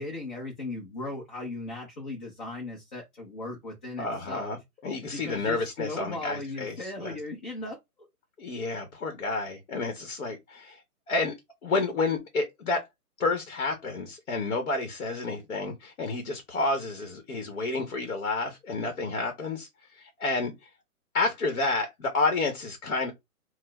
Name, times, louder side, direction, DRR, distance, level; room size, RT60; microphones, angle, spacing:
voice 1, 0.0-4.6 5.1-7.8, left 2 dB, 35° left, 0.7 m, -37 dB
voice 2, 4.0-4.6 4.8-7.2 8.4-10.8 11.1-11.3 11.6-12.8 13.2-20.7 21.1-23.1, left 3 dB, 55° left, 1.0 m, -30 dB
4.3 x 2.1 x 2.2 m
hypercardioid pair, 165°, 45 cm